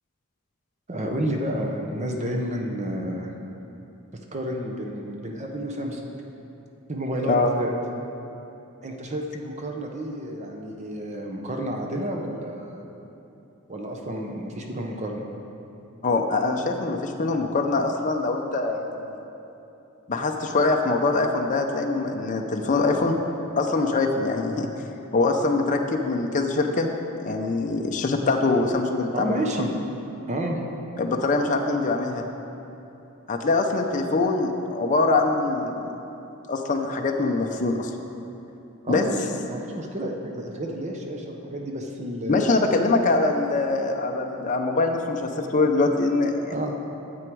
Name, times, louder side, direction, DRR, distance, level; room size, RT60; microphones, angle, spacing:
voice 1, 0.9-3.3 4.1-6.1 6.9-7.7 8.8-12.8 13.7-15.3 29.1-29.7 30.3-30.6 38.8-42.5 46.5-46.7, right 1 dB, 30° right, 1 dB, 0.7 m, -30 dB
voice 2, 16.0-19.2 20.1-23.2 23.6-24.7 25.1-26.9 27.2-29.7 31.0-32.2 33.3-35.8 36.5-37.9 38.9-39.1 42.3-46.6, left 3 dB, 35° left, 3 dB, 0.5 m, -23 dB
9.5 x 7.8 x 4.6 m, 2.9 s
head